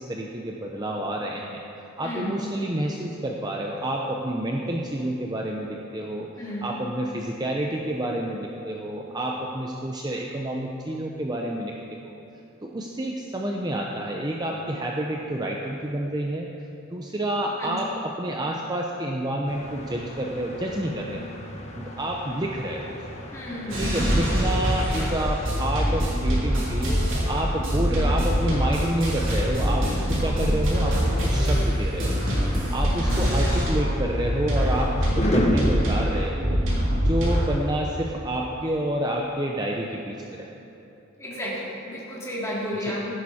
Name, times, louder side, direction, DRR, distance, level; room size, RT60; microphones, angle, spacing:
voice 1, 0.0-1.6 2.0-12.1 12.6-16.5 16.9-21.2 21.7-23.0 23.8-32.2 32.5-36.6 37.0-40.5 42.8-43.0, right 1 dB, 20° right, -1 dB, 0.7 m, -29 dB
voice 2, 2.0-2.4 6.4-6.7 17.6-17.8 23.3-23.9 24.4-24.5 33.0-33.3 41.2-43.1, left 1 dB, 15° left, -7 dB, 3.1 m, -32 dB
sound 1, 19.5-36.3, equal, 35° left, 1.2 m, -34 dB
sound 2, 23.7-33.9 34.2-37.5, equal, 70° right, 3.4 m, -24 dB
16.5 x 10.5 x 4.3 m, 2.9 s
head